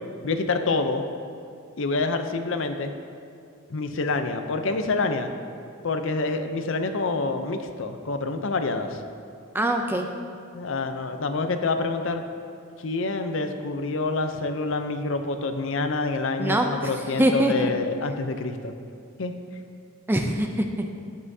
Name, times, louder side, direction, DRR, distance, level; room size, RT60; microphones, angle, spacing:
voice 1, 0.2-1.0 1.8-3.0 3.7-5.3 5.8-9.0 10.5-12.2 12.8-18.7 19.2-19.3, left 3 dB, 60° left, 7 dB, 0.5 m, -27 dB
voice 2, 9.5-10.1 16.4-16.9 17.2-17.7 20.1-20.9, right 1 dB, 10° right, 4 dB, 0.4 m, -23 dB
15.5 x 5.6 x 2.7 m, 2.4 s
head